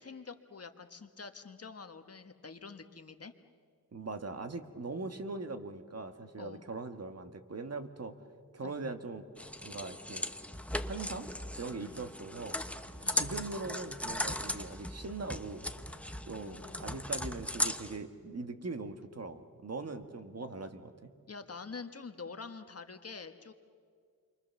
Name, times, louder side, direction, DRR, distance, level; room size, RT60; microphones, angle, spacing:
voice 1, 0.0-3.3 6.4-6.6 8.6-8.8 11.8-12.0 13.0-13.3 16.4-17.0 21.3-23.5, left 4 dB, 45° left, 8 dB, 1.3 m, -47 dB
voice 2, 3.9-8.1 8.5-9.2 9.6-10.3 10.8-11.3 11.6-12.6 13.1-15.7 16.3-21.1, right 3 dB, 50° right, 7 dB, 1.5 m, -41 dB
sound 1, 9.4-18.0, left 1 dB, 5° left, 1.0 m, -38 dB
29.0 x 24.0 x 7.0 m, 2.1 s
wide cardioid pair, 105°, 33 cm